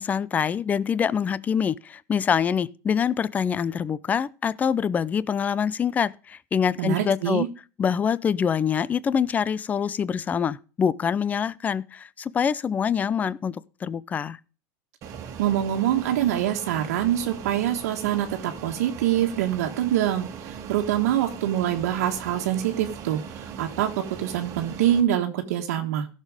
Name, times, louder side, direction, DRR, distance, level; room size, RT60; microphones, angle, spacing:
voice 1, 0.0-7.4 7.8-14.4, left 7 dB, 20° left, 0.5 m, -25 dB
voice 2, 6.8-7.5 15.4-23.9 24.2-26.1, right 11 dB, 80° right, 1.5 m, -25 dB
Fixed-wing aircraft airplane, 15.0-25.0, right 7 dB, 35° right, 1.8 m, -39 dB
15.5 x 6.7 x 4.9 m
supercardioid pair, 145°, 8 cm